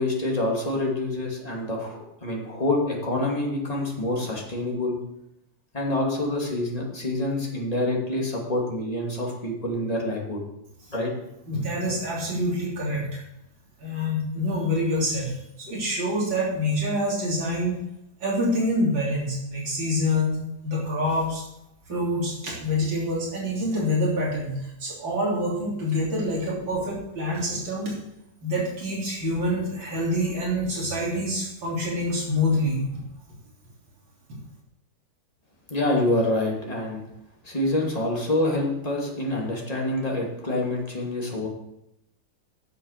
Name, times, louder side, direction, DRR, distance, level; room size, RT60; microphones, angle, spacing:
voice 1, 0.0-5.0 5.7-10.4 10.9-11.1 35.7-37.0 37.4-41.5, left 1 dB, 20° left, -3 dB, 2.7 m, -26 dB
voice 2, 11.5-13.0 13.8-17.8 18.2-20.4 20.6-21.5 21.9-27.9 28.4-32.8, left 1 dB, 85° right, -4 dB, 3.9 m, -26 dB
10.0 x 7.1 x 6.6 m, 0.84 s
omnidirectional pair, 2.0 m